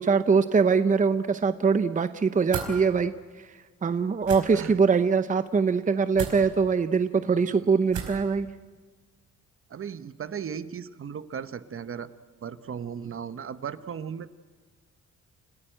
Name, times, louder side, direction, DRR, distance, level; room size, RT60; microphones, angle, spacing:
voice 1, 0.0-3.5 3.8-8.5, right 5 dB, 25° right, 11 dB, 0.8 m, -23 dB
sound 1, 2.5-2.7 4.2-4.4 6.1-6.4 7.9-8.2, right 7 dB, 80° right, 4.9 m, -33 dB
voice 2, 7.2-7.6 9.7-12.1 12.4-14.3, right 7 dB, 45° right, 12 dB, 1.0 m, -36 dB
30.0 x 14.0 x 9.0 m, 1.5 s
cardioid pair, 90°, 30 cm